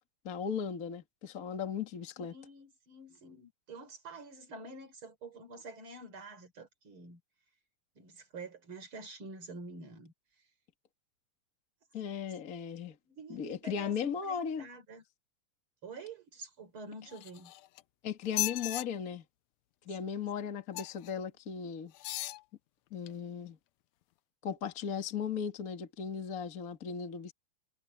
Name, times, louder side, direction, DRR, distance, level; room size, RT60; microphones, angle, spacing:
voice 1, 0.2-2.3 11.9-13.0 13.3-14.6 18.0-19.2 19.8-21.9 22.9-23.6 24.4-27.3, left 7 dB, 35° left, 1.7 m, -37 dB
voice 2, 2.2-7.2 7.9-10.1 13.0-15.0 15.8-17.5, right 3 dB, 35° right, 5.1 m, -48 dB
sound 1, 17.1-17.8 18.3-18.9 20.7-21.1 21.9-22.4 23.1-23.2, left 15 dB, 85° left, 1.6 m, -36 dB
omnidirectional pair, 4.0 m